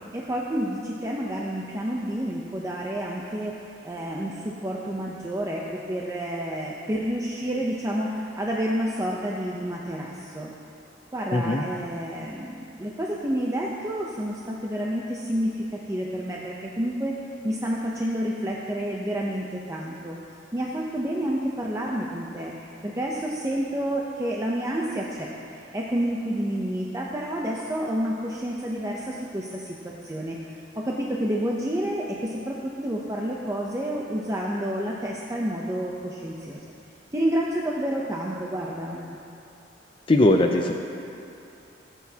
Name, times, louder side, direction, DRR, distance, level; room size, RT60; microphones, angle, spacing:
voice 1, 0.1-3.5 3.8-10.5 11.1-17.2 17.4-20.2 20.5-22.5 22.8-25.3 25.6-36.6 37.1-39.2, equal, 15° right, -3 dB, 0.6 m, -29 dB
voice 2, 11.3-11.6 40.1-40.7, left 1 dB, 30° left, 2 dB, 0.5 m, -19 dB
17.5 x 8.2 x 2.8 m, 2.6 s
head